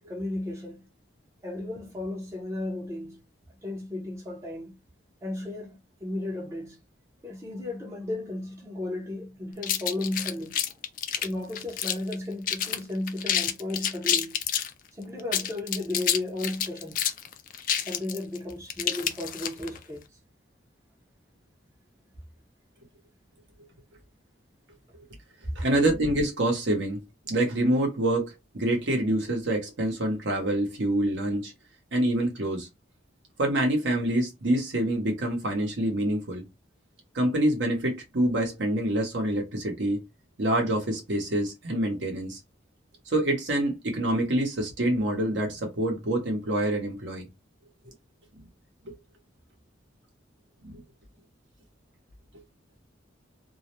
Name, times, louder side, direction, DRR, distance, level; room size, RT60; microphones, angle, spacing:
voice 1, 0.1-0.8 1.4-3.2 3.6-4.7 5.2-6.8 7.2-10.8 11.2-14.4 14.9-17.0 17.9-20.0, left 2 dB, 15° right, 0.5 m, -34 dB
sound 1, 9.6-12.1 12.5-12.8 13.1-14.7 15.2-19.8, left 9 dB, 45° left, 0.3 m, -28 dB
voice 2, 25.5-27.0 27.3-31.5 31.9-32.7 33.4-36.4 37.1-40.0 40.4-42.4 43.1-47.3 48.9-49.0 50.6-50.8, right 1 dB, 65° right, 0.8 m, -26 dB
2.3 x 2.0 x 2.9 m
head